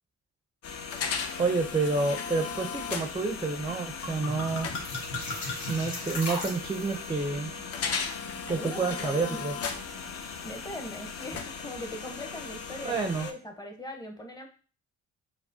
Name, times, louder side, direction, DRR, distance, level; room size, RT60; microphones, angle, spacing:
sound 1, 0.6-13.3, left 6 dB, 50° left, 0.6 m, -37 dB
voice 1, 1.4-4.7 5.7-7.5 8.5-9.5 12.8-13.3, right 4 dB, 15° right, 4 dB, 0.4 m, -29 dB
sound 2, 3.7-3.8 4.0-7.1, left 2 dB, 70° left, 1.3 m, -36 dB
sound 3, 7.0-11.2, left 3 dB, 35° left, 1.2 m, -51 dB
voice 2, 8.5-9.5 10.4-14.5, left 1 dB, 15° left, 3 dB, 0.7 m, -41 dB
4.8 x 2.0 x 2.6 m, 0.37 s
cardioid pair, 90°, 30 cm